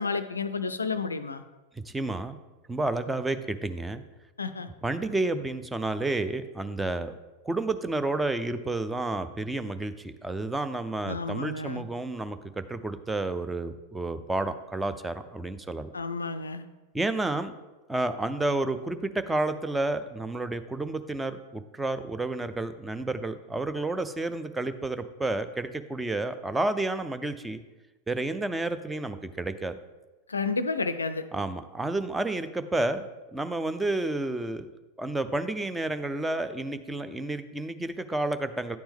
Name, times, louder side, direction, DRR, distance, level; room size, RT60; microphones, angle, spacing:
voice 1, 0.0-1.4 4.4-4.7 11.1-11.8 15.9-16.6 30.3-31.2, left 4 dB, 75° left, 11 dB, 0.3 m, -31 dB
voice 2, 1.9-2.4 2.7-4.0 4.8-7.2 7.4-15.9 16.9-17.5 17.9-27.6 28.1-29.8 31.3-34.7 35.0-38.8, right 2 dB, 10° right, 10 dB, 0.4 m, -30 dB
9.3 x 4.3 x 3.5 m, 1.1 s
figure-of-eight pair, 90°, 0 cm